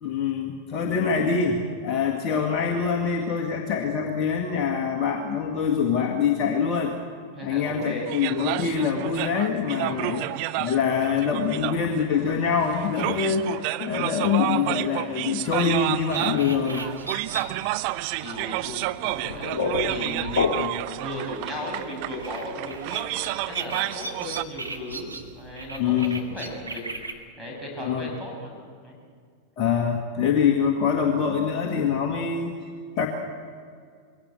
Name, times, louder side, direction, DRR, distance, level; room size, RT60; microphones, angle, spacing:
voice 1, 0.0-6.9 7.4-10.2 10.6-16.9 25.8-26.2 27.8-28.1 29.6-32.5 33.0-33.1, left 6 dB, 35° left, 2 dB, 1.9 m, -24 dB
voice 2, 7.3-8.1 9.9-10.1 17.3-17.7 18.2-26.8 27.4-28.5 28.8-29.0, left 1 dB, ahead, -3 dB, 7.4 m, -36 dB
sound 1, 8.1-24.4, right 18 dB, 45° right, 0.6 m, -31 dB
sound 2, 16.0-27.1, right 3 dB, 80° right, 1.8 m, -39 dB
sound 3, 19.1-21.0, left 4 dB, 60° left, 1.8 m, -27 dB
22.0 x 17.0 x 8.0 m, 2.1 s
figure-of-eight pair, 90°, 0 cm